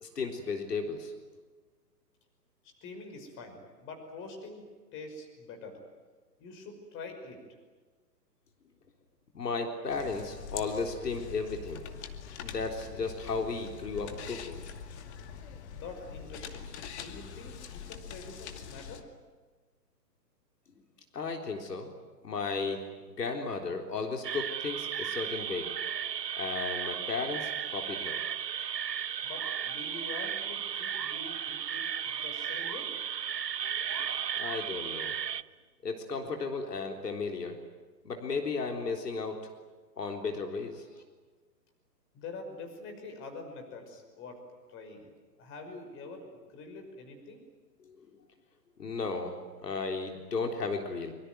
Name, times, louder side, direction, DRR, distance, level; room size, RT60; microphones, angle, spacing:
voice 1, 0.0-1.1 9.3-11.8 12.4-14.6 21.1-21.9 22.2-22.8 23.1-25.7 26.4-28.2 34.3-35.2 35.8-37.6 38.0-39.4 40.0-40.8 47.8-48.0 48.8-51.1, left 4 dB, 70° left, 3 dB, 3.9 m, -34 dB
voice 2, 2.6-5.8 6.4-7.4 15.7-19.1 29.2-32.9 42.1-45.1 45.4-47.5, left 3 dB, 25° left, 5 dB, 5.7 m, -45 dB
sound 1, 9.9-19.0, left 7 dB, 40° left, 2.4 m, -44 dB
sound 2, 24.2-35.4, right 8 dB, 75° right, 0.9 m, -35 dB
25.0 x 24.0 x 9.4 m, 1.4 s
figure-of-eight pair, 130°, 50 cm